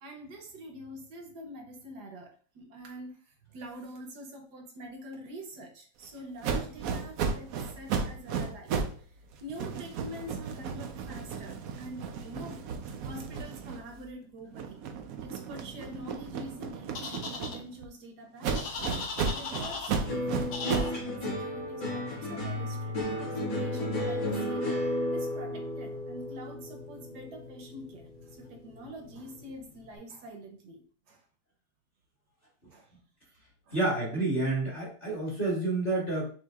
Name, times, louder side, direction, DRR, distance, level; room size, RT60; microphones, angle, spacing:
voice 1, 0.0-8.8 9.4-12.6 13.0-14.8 15.2-18.7 19.2-23.0 23.4-24.7 25.1-31.2 32.7-32.9 33.7-33.8, equal, 65° right, 3 dB, 1.3 m, -45 dB
sound 1, 6.4-9.0 9.3-14.1 14.5-17.9 18.4-21.0, right 5 dB, 80° right, 0.7 m, -34 dB
sound 2, 17.0-17.6 18.5-20.0 20.5-20.9, left 4 dB, 70° left, 1.2 m, -37 dB
sound 3, 20.1-28.5 28.8-29.5, left 1 dB, 90° left, 2.4 m, -33 dB
voice 2, 33.7-36.3, right 2 dB, 35° left, -4 dB, 1.2 m, -29 dB
6.2 x 2.7 x 2.3 m, 0.42 s
omnidirectional pair, 2.0 m